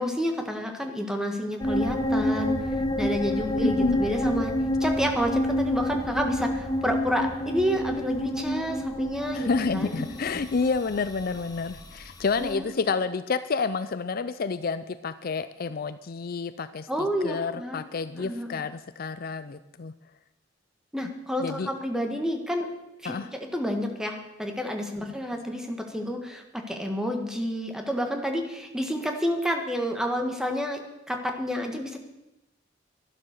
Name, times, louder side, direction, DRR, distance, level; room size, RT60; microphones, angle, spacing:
voice 1, 0.0-2.5 3.0-4.5 4.8-10.0 12.4-12.8 16.9-17.8 18.2-18.6 20.9-22.7 23.0-30.8 31.1-32.0, equal, 5° right, 3 dB, 1.6 m, -29 dB
sound 1, 1.6-12.5, left 1 dB, 20° left, 1.3 m, -28 dB
voice 2, 3.6-4.0 9.3-16.9 17.2-19.9 21.4-21.7 23.0-23.3, left 4 dB, 50° left, 13 dB, 0.5 m, -29 dB
12.0 x 11.5 x 6.6 m, 0.94 s
head